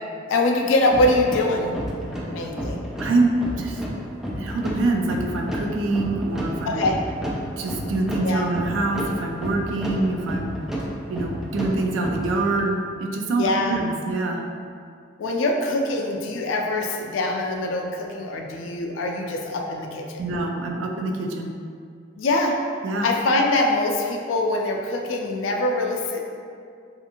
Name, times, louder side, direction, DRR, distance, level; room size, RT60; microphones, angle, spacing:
voice 1, 0.3-1.8 2.3-2.8 6.6-7.0 8.2-8.5 13.4-13.8 15.2-20.2 22.2-22.6 23.0-26.2, left 2 dB, 85° left, 1 dB, 0.4 m, -23 dB
sound 1, 0.9-12.7, equal, 5° right, 0.3 m, -31 dB
voice 2, 3.0-3.8 4.4-6.8 7.6-10.6 11.1-14.4 20.2-21.5 22.8-23.1, right 2 dB, 85° right, 2 dB, 0.3 m, -25 dB
2.5 x 2.4 x 2.8 m, 2.3 s
head